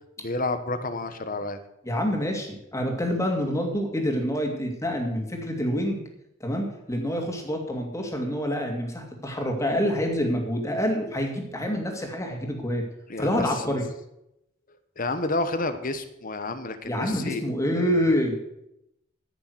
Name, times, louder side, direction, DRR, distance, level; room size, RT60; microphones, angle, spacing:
voice 1, 0.2-1.6 13.1-13.8 15.0-18.0, left 2 dB, 45° left, 10 dB, 1.3 m, -30 dB
voice 2, 1.9-6.0 6.4-12.8 13.2-13.8 16.8-18.4, equal, 15° left, 2 dB, 2.6 m, -27 dB
14.5 x 6.8 x 8.1 m, 0.82 s
head